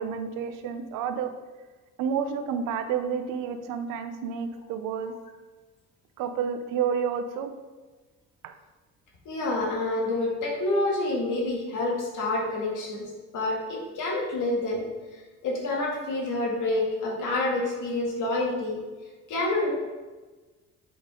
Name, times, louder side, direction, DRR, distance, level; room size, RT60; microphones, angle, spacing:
voice 1, 0.0-1.3 2.0-5.1 6.2-7.5 8.4-8.6, right 7 dB, 75° right, 8 dB, 0.8 m, -30 dB
voice 2, 9.3-13.1 13.3-14.9 15.4-18.8 19.3-19.7, left 2 dB, 65° left, -1 dB, 2.1 m, -28 dB
7.9 x 5.0 x 3.8 m, 1.3 s
supercardioid pair, 65°, 32 cm